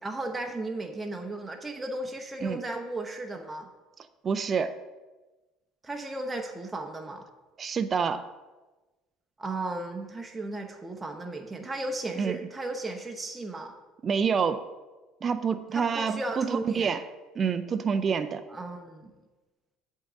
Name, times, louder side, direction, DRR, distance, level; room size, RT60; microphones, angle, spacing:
voice 1, 0.0-3.7 5.8-7.2 9.4-13.7 15.7-16.9 18.5-19.1, right 2 dB, 15° right, 3 dB, 0.8 m, -35 dB
voice 2, 4.2-4.7 7.6-8.2 12.2-12.4 14.0-14.6 15.2-17.0 17.4-18.4, right 6 dB, 40° right, 9 dB, 0.4 m, -27 dB
8.0 x 3.7 x 6.0 m, 1.2 s
hypercardioid pair, 65°, 0 cm